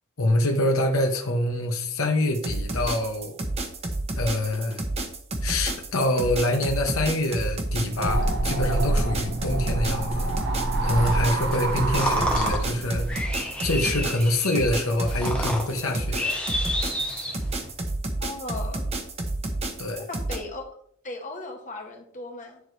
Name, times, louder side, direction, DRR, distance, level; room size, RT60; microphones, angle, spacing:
voice 1, 0.2-3.3 4.2-4.8 5.4-10.3 10.8-13.3 13.6-16.4 19.8-20.1, left 1 dB, 75° left, 1.0 m, -25 dB
sound 1, 2.3-20.4, right 2 dB, 30° right, 1.0 m, -30 dB
sound 2, 7.8-13.2, right 2 dB, 55° right, 0.8 m, -26 dB
sound 3, 11.5-17.7, left 1 dB, 5° left, 1.2 m, -31 dB
voice 2, 18.2-18.8 20.1-20.6 21.0-22.6, left 2 dB, 35° left, 1.5 m, -36 dB
10.0 x 4.6 x 3.3 m
head